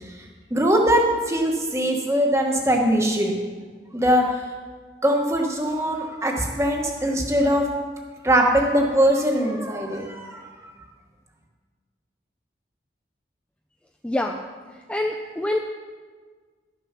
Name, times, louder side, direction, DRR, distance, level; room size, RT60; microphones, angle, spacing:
voice 1, 0.5-3.3 3.9-4.3 5.0-7.7 8.2-10.4, equal, 15° right, 1 dB, 1.3 m, -21 dB
voice 2, 14.0-14.4 14.9-15.6, left 1 dB, 5° left, 2 dB, 0.4 m, -25 dB
12.5 x 6.9 x 5.8 m, 1.5 s
head